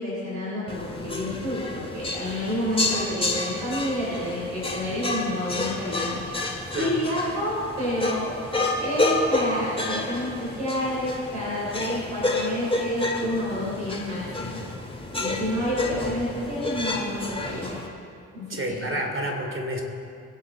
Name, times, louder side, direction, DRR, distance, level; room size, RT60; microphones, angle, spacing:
voice 1, 0.0-8.3 8.8-14.6 15.1-17.8 18.3-19.0, left 1 dB, 75° right, -8 dB, 4.1 m, -29 dB
sound 1, 0.7-17.9, left 2 dB, 15° left, 2.7 m, -30 dB
voice 2, 18.5-19.8, right 1 dB, 35° right, 3 dB, 3.0 m, -29 dB
23.0 x 8.5 x 4.1 m, 2.4 s
hypercardioid pair, 45°, 37 cm